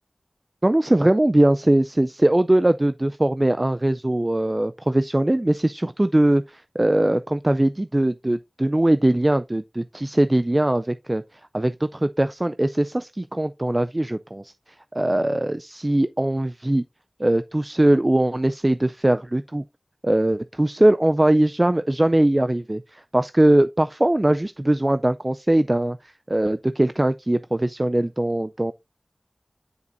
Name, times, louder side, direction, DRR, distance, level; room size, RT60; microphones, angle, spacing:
voice 1, 0.6-14.5 14.9-16.8 17.2-19.6 20.0-28.7, right 1 dB, 30° right, 0.3 m, -21 dB
9.4 x 5.2 x 2.5 m
wide cardioid pair, 50°, 0 cm